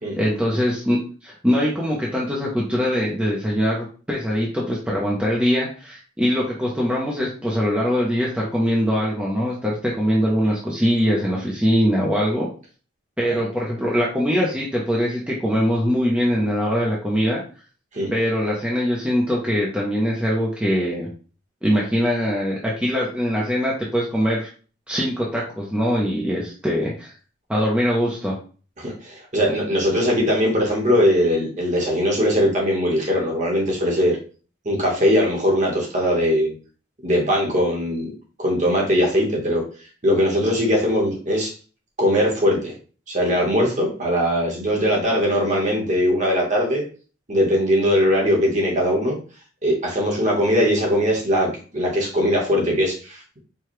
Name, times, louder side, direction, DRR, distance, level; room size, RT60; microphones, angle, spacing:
voice 1, 0.2-12.5 13.2-17.4 18.1-21.1 21.6-24.5 24.9-27.1 27.5-28.4, equal, 5° right, -5 dB, 0.6 m, -22 dB
voice 2, 28.8-34.2 34.6-36.5 37.0-38.1 38.4-39.6 40.0-41.5 42.0-42.7 43.1-46.8 47.3-49.2 49.6-53.2, equal, 40° right, -1 dB, 1.2 m, -20 dB
4.7 x 2.3 x 3.1 m, 0.39 s
head